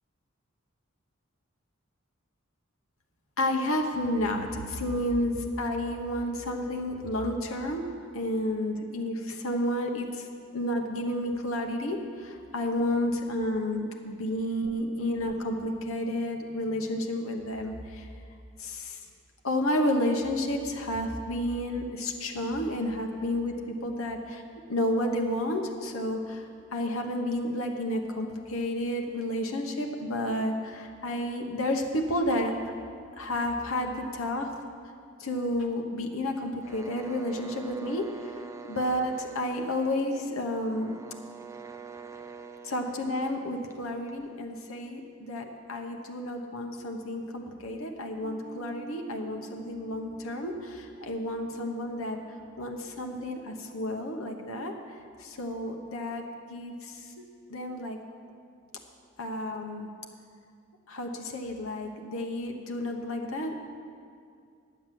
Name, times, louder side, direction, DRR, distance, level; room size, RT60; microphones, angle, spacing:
voice 1, 3.4-10.3 10.5-18.1 18.6-19.0 19.4-23.5 23.8-24.4 24.7-26.5 26.7-32.5 33.2-34.5 35.2-38.3 38.7-41.0 42.6-52.2 52.6-57.2 57.5-58.0 59.2-59.9 60.9-63.5, left 1 dB, 80° left, 2 dB, 1.1 m, -31 dB
sound 1, 36.6-44.4, right 5 dB, 15° right, 0.6 m, -46 dB
sound 2, 48.2-55.0, right 4 dB, 30° left, 2.9 m, -52 dB
10.0 x 8.1 x 7.5 m, 2.3 s
head